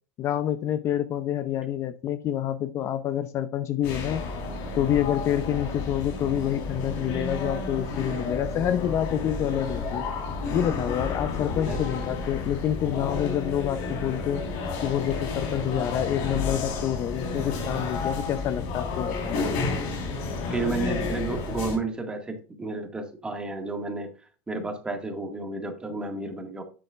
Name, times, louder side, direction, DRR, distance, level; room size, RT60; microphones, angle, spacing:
voice 1, 0.2-4.2 4.8-10.1 10.5-14.4 14.8-19.4, left 11 dB, 40° left, 12 dB, 0.6 m, -27 dB
sound 1, 3.8-21.8, left 3 dB, 70° left, 4.0 m, -31 dB
voice 2, 20.5-24.1 24.5-26.6, right 3 dB, 10° right, 5 dB, 1.9 m, -31 dB
9.7 x 7.6 x 2.5 m, 0.37 s
supercardioid pair, 120°, 7 cm